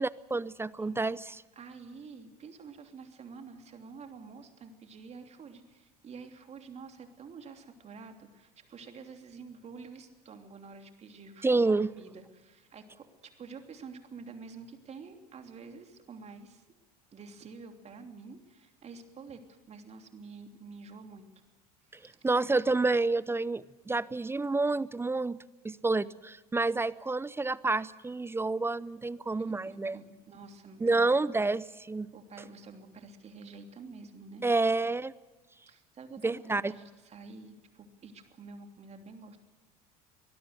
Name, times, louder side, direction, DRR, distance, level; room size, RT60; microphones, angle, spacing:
voice 1, 0.0-1.4 11.4-11.9 22.2-25.4 25.6-30.0 30.8-32.1 34.4-35.1 36.2-36.7, right 3 dB, 10° right, 20 dB, 0.6 m, -29 dB
voice 2, 0.8-1.1 1.5-16.6 17.1-21.3 21.8-22.2 29.4-31.0 32.1-34.4 35.7-39.4, right 4 dB, 35° right, 5 dB, 3.1 m, -48 dB
24.0 x 20.0 x 6.7 m, 1.2 s
figure-of-eight pair, 70°, 20 cm